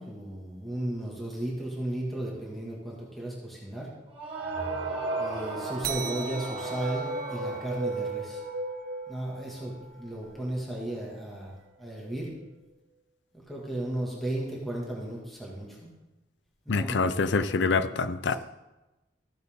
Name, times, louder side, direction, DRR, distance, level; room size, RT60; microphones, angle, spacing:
voice 1, 0.0-3.9 5.2-8.4 9.1-12.3 13.3-15.9 16.7-17.3 18.3-18.4, right 1 dB, ahead, -4 dB, 1.9 m, -35 dB
sound 1, 4.1-8.1, right 3 dB, 30° right, 1.7 m, -37 dB
sound 2, 4.3-9.8 10.2-10.3 10.5-10.7 11.4-11.5 11.9-12.2, right 3 dB, 85° right, 1.8 m, -36 dB
sound 3, 5.8-10.8, right 4 dB, 55° right, 0.6 m, -41 dB
voice 2, 16.7-18.4, left 4 dB, 75° left, 12 dB, 0.5 m, -26 dB
14.5 x 8.1 x 3.6 m, 1.1 s
head